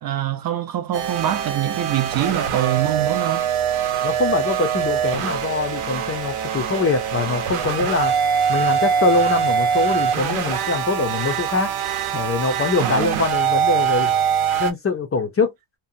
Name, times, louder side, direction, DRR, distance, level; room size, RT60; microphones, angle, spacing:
voice 1, 0.0-3.4 12.8-13.2, right 11 dB, 45° right, 0.5 m, -24 dB
sound 1, 0.9-14.7, right 8 dB, 90° right, 0.8 m, -23 dB
voice 2, 4.0-8.2 8.5-11.7 12.1-14.1 14.6-15.5, left 3 dB, 30° left, 0.5 m, -23 dB
2.8 x 2.1 x 2.5 m
cardioid pair, 170°, 49 cm